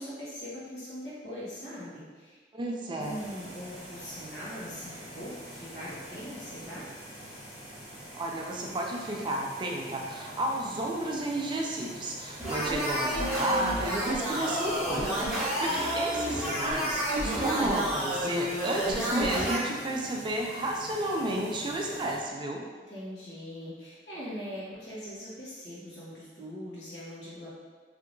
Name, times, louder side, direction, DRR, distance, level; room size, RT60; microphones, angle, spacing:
voice 1, 0.0-2.4 2.8-6.9 15.6-15.8 22.9-27.5, equal, 70° left, -8 dB, 1.2 m, -41 dB
voice 2, 2.5-3.2 8.1-22.7, right 1 dB, 25° right, 0 dB, 0.4 m, -32 dB
sound 1, 3.0-22.2, equal, 20° left, 1.4 m, -45 dB
sound 2, 12.4-19.6, equal, ahead, 1.2 m, -30 dB
3.4 x 2.8 x 2.5 m, 1.4 s
head